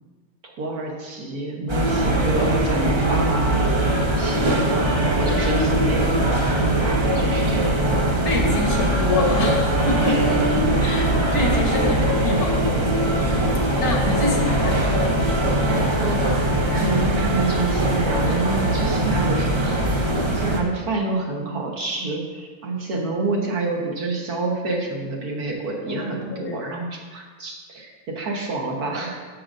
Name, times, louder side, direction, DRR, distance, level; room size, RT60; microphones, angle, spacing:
voice 1, 0.4-3.6 4.2-6.4 6.8-7.8 10.1-10.3 10.6-10.8 16.0-16.2 16.7-19.8 20.0-29.3, right 3 dB, 80° right, 0 dB, 1.6 m, -28 dB
sound 1, 1.7-20.6, right 1 dB, 40° right, 0.4 m, -21 dB
voice 2, 8.2-10.2 10.8-13.3 13.8-14.9 25.9-26.6, left 3 dB, 75° left, 0 dB, 1.6 m, -26 dB
9.5 x 6.3 x 2.6 m, 1.4 s
omnidirectional pair, 1.6 m